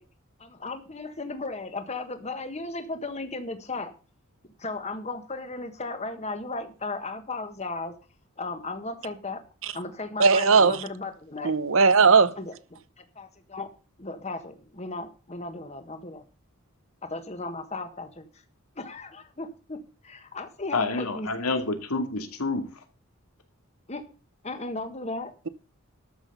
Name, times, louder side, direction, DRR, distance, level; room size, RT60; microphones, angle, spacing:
voice 1, 0.4-3.9 4.6-7.9 8.4-9.4 9.7-11.5 12.4-12.5 13.0-13.7 14.0-16.3 17.0-18.3 18.7-21.3 23.9-24.0 24.4-25.3, left 3 dB, 30° left, 1.4 m, -35 dB
voice 2, 10.2-10.8 11.4-12.3, right 5 dB, 65° right, 0.8 m, -18 dB
voice 3, 20.7-22.8, left 3 dB, 90° left, 2.4 m, -28 dB
13.0 x 6.3 x 6.8 m
head